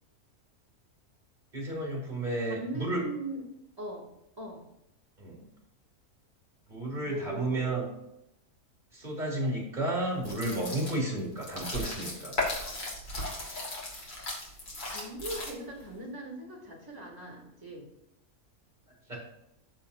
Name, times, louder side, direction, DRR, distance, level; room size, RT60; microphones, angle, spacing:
voice 1, 1.5-3.1 5.2-5.5 6.7-7.9 8.9-12.3 19.1-19.2, right 1 dB, 30° right, -3 dB, 3.5 m, -32 dB
voice 2, 2.4-3.4 3.8-4.0 4.4-4.6 7.0-7.7 14.9-17.9, right 1 dB, 15° right, -4 dB, 2.9 m, -39 dB
sound 1, 10.2-15.8, left 2 dB, 90° left, 3.2 m, -36 dB
14.5 x 5.0 x 2.8 m, 0.84 s
omnidirectional pair, 1.6 m